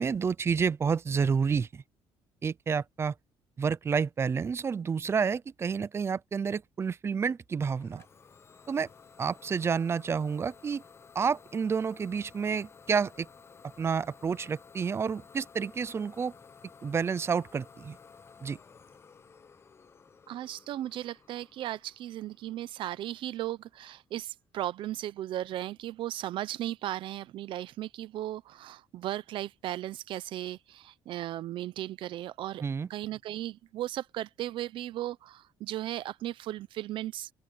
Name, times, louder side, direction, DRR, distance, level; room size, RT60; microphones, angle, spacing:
voice 1, 0.0-1.8 2.4-3.1 3.6-8.0 8.7-8.9 9.2-10.8 11.1-13.3 13.8-16.3 16.8-18.0 18.4-18.6 32.6-32.9, right 6 dB, 30° right, 0.6 m, -29 dB
Idling / Domestic sounds home sounds, 7.8-23.3, left 5 dB, 30° left, 0.9 m, -55 dB
voice 2, 20.3-32.6 32.9-37.3, right 13 dB, 65° right, 0.7 m, -36 dB
open air
cardioid pair, 120°, 9 cm